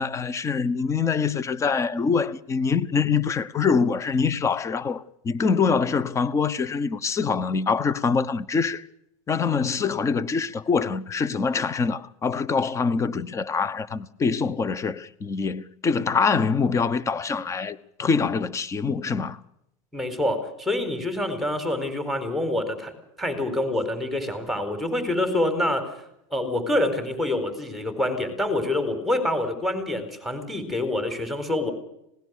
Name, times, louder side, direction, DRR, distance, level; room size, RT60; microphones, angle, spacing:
voice 1, 0.0-8.8 9.3-19.4, left 5 dB, 15° left, 1.0 m, -24 dB
voice 2, 19.9-22.9 23.2-25.9 26.3-31.7, left 1 dB, ahead, 4.4 m, -26 dB
26.5 x 18.5 x 6.6 m
supercardioid pair, 140°, 17 cm